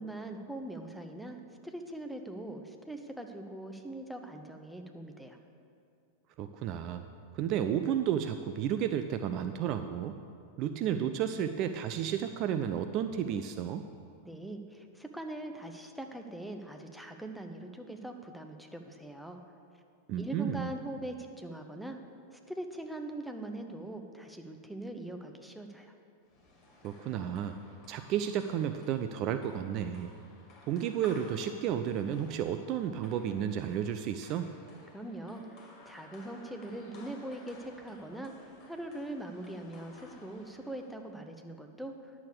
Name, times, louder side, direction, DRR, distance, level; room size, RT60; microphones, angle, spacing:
voice 1, 0.0-5.4 14.2-19.4 20.2-22.0 22.3-25.9 34.9-35.4 35.8-41.9, right 1 dB, ahead, 4 dB, 0.9 m, -42 dB
voice 2, 6.4-7.1 7.3-10.2 10.6-13.8 20.1-20.7 26.8-27.6 27.9-30.1 30.7-34.5, right 9 dB, 40° right, 9 dB, 0.4 m, -32 dB
sound 1, 26.3-41.1, left 2 dB, 35° left, 2.3 m, -56 dB
10.5 x 6.9 x 6.8 m, 2.4 s
figure-of-eight pair, 90°, 0 cm